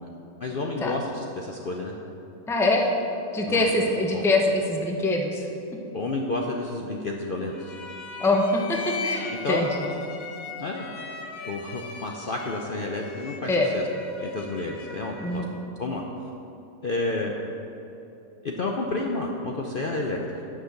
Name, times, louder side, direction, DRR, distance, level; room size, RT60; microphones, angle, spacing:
voice 1, 0.4-1.9 3.5-3.7 4.1-4.2 5.9-7.7 9.4-9.7 10.5-10.9 11.4-13.8 14.2-15.4 15.8-16.0 16.8-17.4 18.4-20.5, left 2 dB, 50° left, 0 dB, 0.7 m, -30 dB
voice 2, 2.5-2.9 3.3-5.5 8.2-9.7 13.4-13.7 15.2-15.5, left 2 dB, ahead, 1 dB, 0.6 m, -23 dB
sound 1, 7.5-15.6, left 4 dB, 75° left, 1.3 m, -39 dB
9.8 x 6.3 x 6.5 m, 2.9 s
omnidirectional pair, 1.5 m